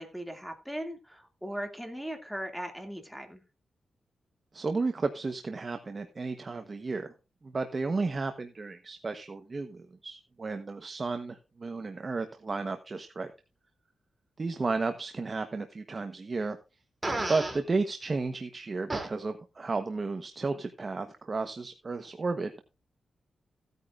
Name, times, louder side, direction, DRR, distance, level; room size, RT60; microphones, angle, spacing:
voice 1, 0.0-3.4, equal, ahead, 5 dB, 2.3 m, -38 dB
voice 2, 4.5-7.1 7.4-13.3 14.4-16.6 17.3-22.7, right 3 dB, 35° right, 7 dB, 1.0 m, -33 dB
Fart, 17.0-17.6 18.9-19.1, right 2 dB, 20° right, 2.9 m, -31 dB
15.5 x 9.4 x 2.5 m, 0.28 s
cardioid pair, 100°, 0 cm